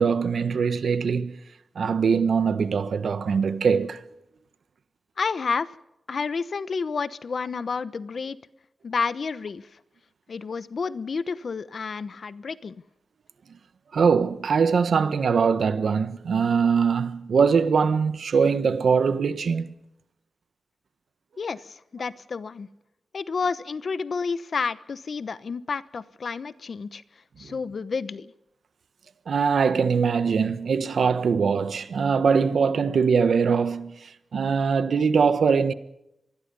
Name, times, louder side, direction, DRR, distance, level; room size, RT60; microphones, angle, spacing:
voice 1, 0.0-1.3 1.7-4.0 13.9-19.7 29.3-33.9 34.3-35.7, right 6 dB, 75° right, 1.3 m, -22 dB
voice 2, 5.2-5.7 6.1-8.4 8.8-9.7 10.3-12.8 21.4-22.7 23.1-27.0 27.4-28.3, left 5 dB, 55° left, 1.0 m, -30 dB
26.0 x 20.5 x 5.5 m
wide cardioid pair, 125°, 0 cm